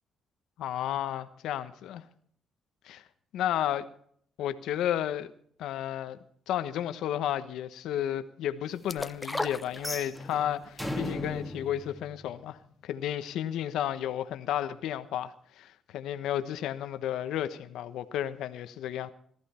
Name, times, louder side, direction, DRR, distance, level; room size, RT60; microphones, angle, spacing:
voice 1, 0.6-2.0 2.8-3.0 3.3-3.8 4.4-5.3 5.6-6.2 6.5-19.1, left 11 dB, 85° left, 1.1 m, -32 dB
sound 1, 8.9-10.4 10.8-10.9, left 2 dB, 10° left, 0.9 m, -34 dB
sound 2, 9.7-12.8, left 1 dB, 5° right, 2.8 m, -38 dB
18.5 x 14.0 x 4.3 m
cardioid pair, 90°, 0 cm